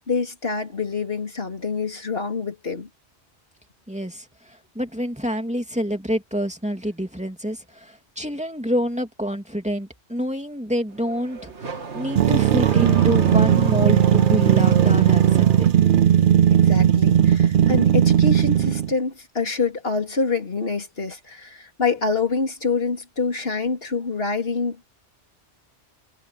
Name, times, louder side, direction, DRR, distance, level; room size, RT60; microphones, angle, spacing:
voice 1, 0.1-2.9 16.5-24.9, left 4 dB, 60° left, 3.6 m, -26 dB
voice 2, 3.9-15.7, equal, 5° right, 2.8 m, -27 dB
Car / Accelerating revving vroom, 10.9-15.9, right 5 dB, 75° right, 2.2 m, -31 dB
sound 1, 12.2-18.9, right 10 dB, 60° right, 0.6 m, -17 dB
omnidirectional pair, 1.2 m